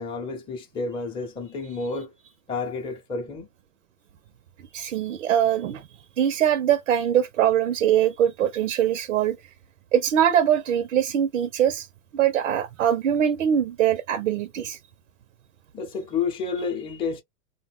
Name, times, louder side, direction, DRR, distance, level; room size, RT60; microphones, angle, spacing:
voice 1, 0.0-2.1 2.5-3.5 15.7-17.2, left 4 dB, 15° left, 0.6 m, -30 dB
voice 2, 4.7-5.9 6.2-9.4 9.9-11.9 12.1-14.8, right 10 dB, 90° right, 0.6 m, -22 dB
2.4 x 2.2 x 3.4 m
hypercardioid pair, 130°, 38 cm